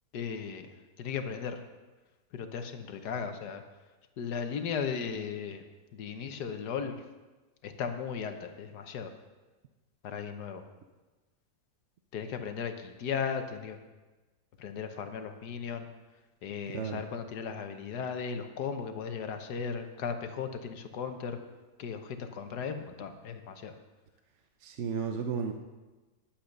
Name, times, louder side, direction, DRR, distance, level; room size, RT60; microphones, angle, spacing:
voice 1, 0.1-0.7 1.0-1.6 2.3-3.6 4.2-5.6 5.9-7.0 7.6-9.1 10.0-10.6 12.1-13.8 14.6-15.9 16.4-21.4 21.8-23.8, left 6 dB, 75° left, 7 dB, 1.5 m, -36 dB
voice 2, 16.7-17.0 24.6-25.5, right 6 dB, 55° right, 5 dB, 0.8 m, -33 dB
10.0 x 8.7 x 6.5 m, 1.2 s
omnidirectional pair, 1.8 m